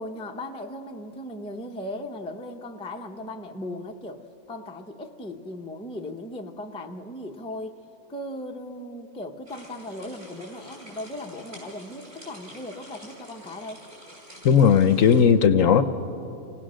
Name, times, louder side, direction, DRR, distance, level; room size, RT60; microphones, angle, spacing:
voice 1, 0.0-7.8 8.1-13.8, left 1 dB, 5° left, 3 dB, 0.6 m, -37 dB
sound 1, 9.5-15.2, equal, 45° right, 5.7 m, -47 dB
voice 2, 14.4-15.8, left 7 dB, 65° left, 11 dB, 1.0 m, -17 dB
27.5 x 18.0 x 6.3 m, 2.9 s
omnidirectional pair, 1.6 m